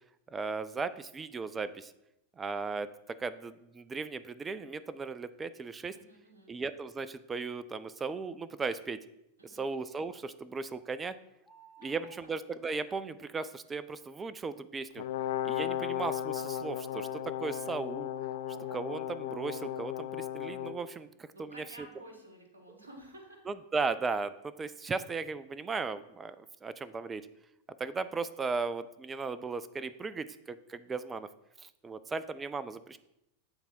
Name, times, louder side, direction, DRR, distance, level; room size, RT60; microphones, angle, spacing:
voice 1, 0.3-1.9 2.4-5.9 6.5-9.0 9.4-11.2 11.8-15.0 15.4-18.1 18.7-21.6 23.5-27.2 27.8-31.3 31.6-33.0, right 4 dB, 15° right, 14 dB, 0.3 m, -36 dB
voice 2, 5.9-6.5 9.4-9.7 11.8-11.9 21.3-23.4, right 1 dB, 70° right, 3 dB, 1.3 m, -52 dB
sound 1, 11.4-12.4 17.0-17.1 17.8-19.1, left 1 dB, ahead, 1.0 m, -56 dB
Brass instrument, 15.0-20.8, left 10 dB, 55° left, 0.4 m, -35 dB
8.6 x 3.4 x 4.3 m, 0.85 s
figure-of-eight pair, 90°, 0 cm